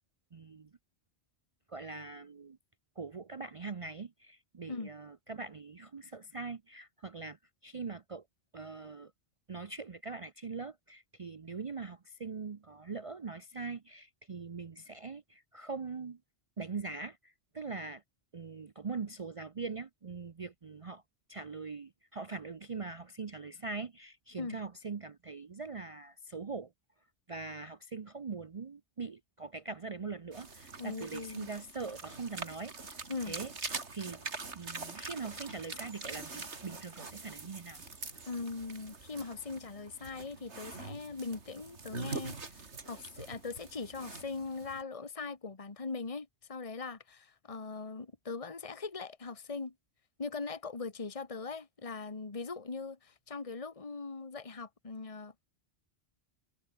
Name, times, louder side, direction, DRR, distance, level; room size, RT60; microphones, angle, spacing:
voice 1, 0.3-0.7 1.7-2.6 3.0-8.2 8.5-9.1 9.5-16.2 16.6-18.0 18.3-21.0 21.3-26.7 27.3-33.5 33.9-37.8, right 4 dB, 35° right, 0.6 m, -42 dB
sound 1, 30.3-44.8, right 4 dB, 80° right, 2.8 m, -44 dB
voice 2, 30.8-31.5 33.1-33.4 38.3-49.7 50.2-55.5, left 4 dB, 30° left, 1.6 m, -40 dB
omnidirectional pair, 1.1 m